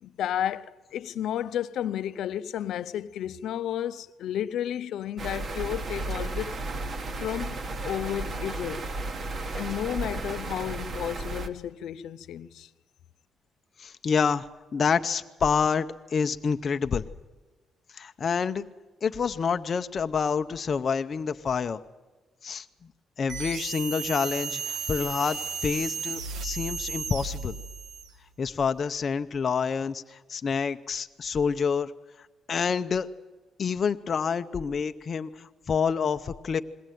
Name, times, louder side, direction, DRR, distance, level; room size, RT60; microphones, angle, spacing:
voice 1, 0.0-6.5 7.2-8.9 9.6-12.7, left 10 dB, 70° left, 0.6 m, -32 dB
sound 1, 5.2-11.5, right 2 dB, 35° right, 1.1 m, -34 dB
voice 2, 13.8-17.1 17.9-18.7 19.0-21.8 22.4-22.7 23.2-27.6 28.4-31.9 32.2-33.1 33.6-36.6, left 6 dB, 35° left, 0.6 m, -28 dB
sound 2, 23.3-28.2, right 5 dB, 85° right, 1.4 m, -34 dB
21.5 x 17.5 x 9.2 m
cardioid pair, 170°, 0 cm